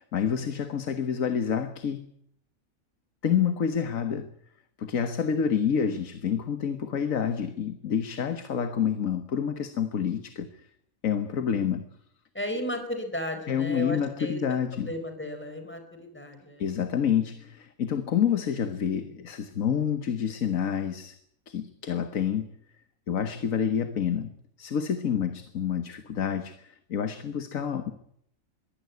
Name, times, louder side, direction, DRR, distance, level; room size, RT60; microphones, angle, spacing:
voice 1, 0.0-2.1 3.2-4.3 4.8-10.5 11.0-11.8 13.5-14.9 16.6-21.2 21.5-22.5 23.1-24.3 24.6-27.9, left 8 dB, 70° left, 1.7 m, -28 dB
voice 2, 12.3-16.7, left 1 dB, 10° left, 4.5 m, -35 dB
23.0 x 16.0 x 9.5 m
omnidirectional pair, 1.4 m